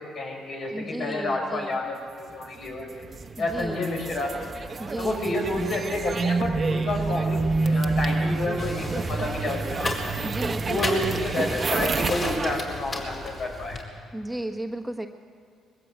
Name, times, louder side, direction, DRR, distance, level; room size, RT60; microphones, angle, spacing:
voice 1, 0.0-3.1 3.4-4.4 4.9-9.9 10.6-13.8, left 2 dB, 65° left, 0 dB, 5.7 m, -30 dB
voice 2, 0.7-1.8 3.4-3.8 4.8-5.5 10.2-11.0 14.1-15.1, right 1 dB, 5° right, 4 dB, 1.3 m, -34 dB
sound 1, 2.7-12.6, right 3 dB, 35° right, 1.0 m, -28 dB
sound 2, 8.6-13.8, left 2 dB, 40° left, 4.3 m, -34 dB
21.0 x 15.5 x 8.3 m, 2.4 s
cardioid pair, 80°, 0 cm